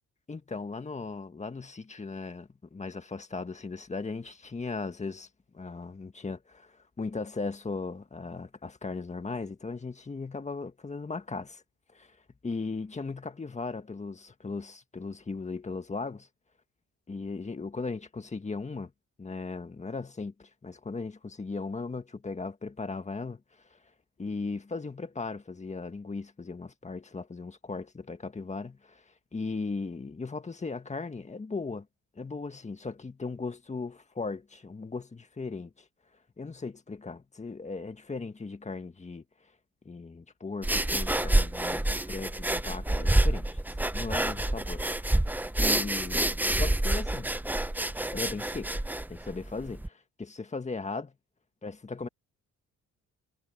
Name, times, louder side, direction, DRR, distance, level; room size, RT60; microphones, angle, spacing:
voice 1, 0.3-5.3 5.5-11.6 11.9-12.2 12.4-16.3 17.1-18.9 19.2-23.4 23.7-23.8 24.2-31.9 32.2-35.9 36.4-39.2 39.9-43.6 43.9-45.2 45.6-47.3 48.1-48.8 49.1-51.1 51.6-52.1, left 4 dB, 25° left, 1.9 m, -37 dB
sound 1, 40.6-49.9, right 1 dB, 5° right, 0.8 m, -28 dB
cardioid pair, 90°, 30 cm